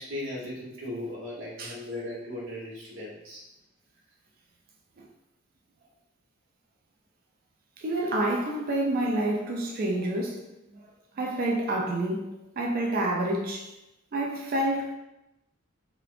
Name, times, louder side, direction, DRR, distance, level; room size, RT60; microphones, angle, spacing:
voice 1, 0.0-3.4, left 1 dB, 80° right, 1.0 m, -37 dB
voice 2, 7.8-10.4 10.7-10.8 11.2-13.7 14.1-14.9, right 1 dB, 45° right, 0.4 m, -28 dB
3.0 x 2.0 x 2.4 m
head